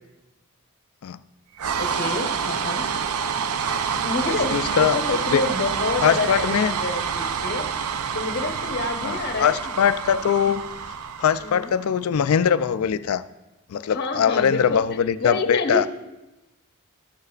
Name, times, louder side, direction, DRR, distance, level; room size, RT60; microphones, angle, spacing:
sound 1, 1.6-11.9, right 6 dB, 80° right, 0.5 m, -27 dB
voice 1, 1.8-2.9 4.0-7.7 8.1-9.6 11.4-11.7 13.8-15.9, left 3 dB, 50° left, 5 dB, 1.0 m, -28 dB
voice 2, 4.5-5.0 5.3-5.4 6.0-6.7 9.0-10.6 11.2-13.2 13.7-15.9, left 8 dB, 70° left, 15 dB, 0.4 m, -21 dB
13.0 x 13.0 x 2.4 m, 1.0 s
head